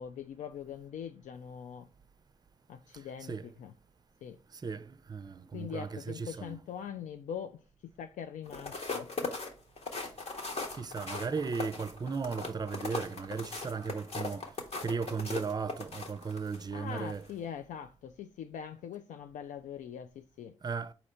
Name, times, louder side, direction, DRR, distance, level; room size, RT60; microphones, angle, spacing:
voice 1, 0.0-1.9 2.7-3.7 4.2-4.4 5.5-9.1 16.7-20.5, left 8 dB, 75° left, 0.4 m, -42 dB
voice 2, 4.5-6.6 10.8-14.5 14.8-17.2 20.6-20.9, right 5 dB, 30° right, 0.5 m, -36 dB
sound 1, 8.5-16.6 17.1-17.3, left 3 dB, 55° left, 1.2 m, -39 dB
4.2 x 2.8 x 4.3 m
supercardioid pair, 45°, 13 cm